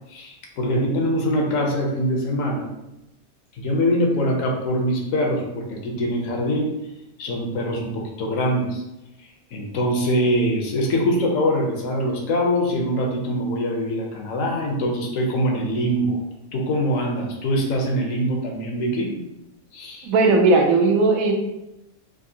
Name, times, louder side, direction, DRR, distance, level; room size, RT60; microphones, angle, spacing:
voice 1, 0.1-2.7 3.6-6.7 7.2-8.8 9.5-16.2 16.5-19.2 19.7-20.1, equal, 75° left, 1 dB, 1.1 m, -23 dB
voice 2, 20.0-21.3, right 3 dB, 90° right, 2 dB, 1.1 m, -17 dB
3.6 x 2.5 x 2.7 m, 0.91 s
omnidirectional pair, 1.4 m